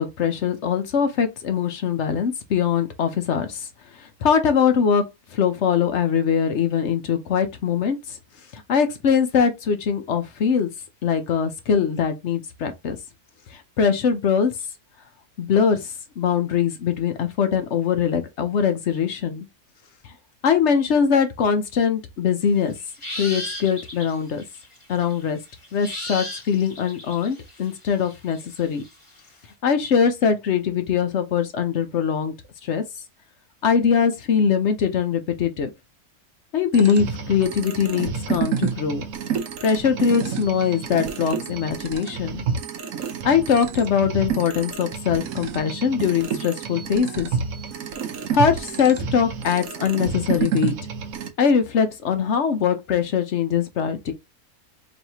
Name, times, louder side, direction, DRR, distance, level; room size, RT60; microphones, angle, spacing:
voice 1, 0.0-3.7 4.0-5.0 5.3-8.2 8.5-10.7 11.0-13.0 13.5-14.5 15.4-19.5 20.4-22.7 23.2-24.4 24.9-25.4 25.7-28.8 29.6-32.3 32.6-32.8 33.6-35.7 36.5-39.0 39.6-42.5 43.2-47.3 48.3-50.7 51.4-54.1, left 7 dB, 60° left, 0.9 m, -22 dB
sound 1, 22.7-29.2, left 1 dB, 20° left, 1.3 m, -36 dB
sound 2, 36.7-51.3, right 6 dB, 70° right, 1.1 m, -29 dB
4.5 x 3.1 x 2.8 m
omnidirectional pair, 1.6 m